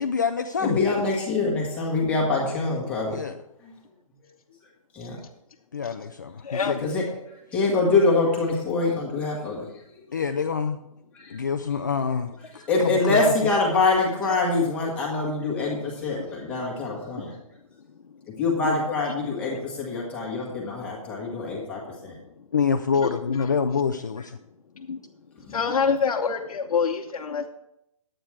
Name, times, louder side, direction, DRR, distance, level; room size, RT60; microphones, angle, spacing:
voice 1, 0.0-0.8 3.1-3.4 5.7-6.9 10.1-10.8 11.3-12.3 12.8-13.3 18.6-18.8 22.5-24.4, left 6 dB, 30° left, 6 dB, 0.3 m, -26 dB
voice 2, 0.6-3.2 3.6-3.7 4.9-5.2 6.8-7.0 7.5-9.6 11.1-11.4 12.7-17.3 18.4-22.1 25.4-25.5, left 3 dB, 5° left, -3 dB, 1.3 m, -24 dB
voice 3, 6.4-6.8 18.0-18.2 19.1-19.2 19.4-19.6 22.0-22.2 23.0-23.1 23.4-23.5 24.2-24.3 24.7-25.0 25.4-27.5, left 6 dB, 85° left, 0 dB, 0.9 m, -27 dB
10.0 x 8.8 x 4.6 m, 0.82 s
hypercardioid pair, 180°, 18 cm